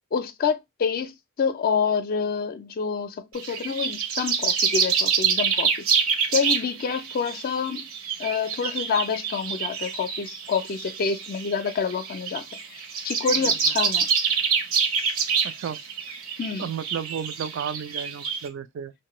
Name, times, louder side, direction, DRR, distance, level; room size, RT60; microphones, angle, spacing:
voice 1, 0.1-1.1 1.4-7.9 8.2-12.4 12.7-14.1 16.4-16.7, left 6 dB, 45° left, 0.4 m, -27 dB
sound 1, 3.3-18.5, right 6 dB, 75° right, 0.7 m, -26 dB
voice 2, 15.4-15.8 16.6-18.9, right 7 dB, 60° right, 0.3 m, -33 dB
3.1 x 2.1 x 2.9 m
head